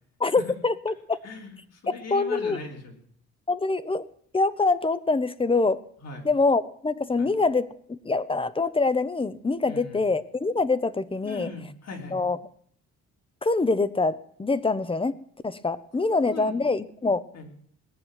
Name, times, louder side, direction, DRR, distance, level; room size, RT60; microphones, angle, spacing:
voice 1, 0.2-1.2 2.1-2.6 3.5-4.1 4.3-5.8 6.2-11.5 12.1-12.4 13.4-17.2, left 3 dB, 20° left, 15 dB, 0.8 m, -25 dB
voice 2, 1.2-3.0 6.0-6.3 7.2-7.3 9.6-10.0 11.2-12.2 16.3-16.6 17.3-17.5, left 3 dB, 55° left, 1 dB, 3.8 m, -40 dB
19.0 x 6.3 x 9.2 m, 0.64 s
cardioid pair, 90°, 30 cm